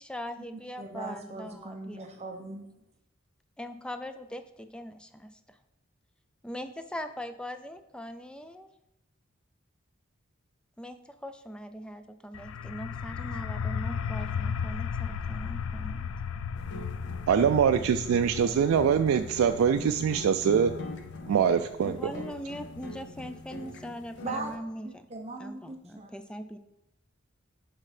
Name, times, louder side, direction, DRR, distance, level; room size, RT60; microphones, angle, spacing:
voice 1, 0.0-2.1 3.6-5.6 6.4-8.7 10.8-16.1 21.8-25.1 25.4-26.6, equal, 5° left, 9 dB, 0.4 m, -41 dB
voice 2, 0.8-2.7 24.2-24.5 24.8-26.2, right 3 dB, 30° right, 3 dB, 0.8 m, -39 dB
sound 1, 12.3-23.8, left 6 dB, 80° left, 0.3 m, -36 dB
sound 2, 16.5-24.6, left 2 dB, 60° left, 0.7 m, -43 dB
voice 3, 17.3-20.7 21.3-22.2, right 7 dB, 85° right, 8 dB, 0.3 m, -24 dB
6.5 x 3.6 x 5.8 m, 0.87 s
head